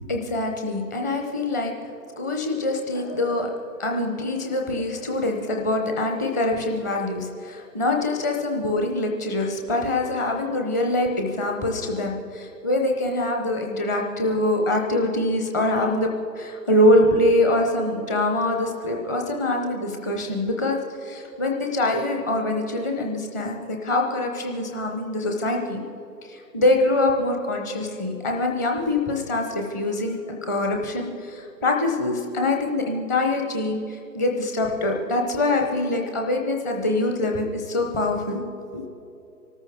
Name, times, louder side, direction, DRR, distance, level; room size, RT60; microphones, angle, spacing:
voice 1, 0.0-1.7 2.2-16.1 16.4-25.8 26.2-38.4 38.7-38.8, left 1 dB, 10° left, 2 dB, 0.7 m, -24 dB
24.5 x 13.5 x 3.5 m, 2.8 s
figure-of-eight pair, 145°, 48 cm